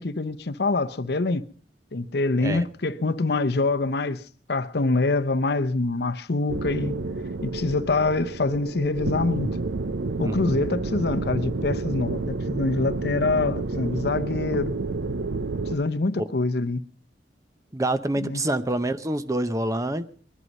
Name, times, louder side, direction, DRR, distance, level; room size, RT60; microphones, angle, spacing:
voice 1, 0.0-1.5 1.9-4.2 4.5-7.0 7.4-9.5 10.2-14.7 15.7-16.8 18.2-18.4, left 3 dB, 60° left, 0.7 m, -25 dB
sound 1, 6.5-15.8, right 3 dB, 85° right, 0.7 m, -30 dB
voice 2, 10.2-10.5 16.2-16.3 17.7-20.1, right 1 dB, 20° right, 0.6 m, -26 dB
21.5 x 11.0 x 5.3 m
head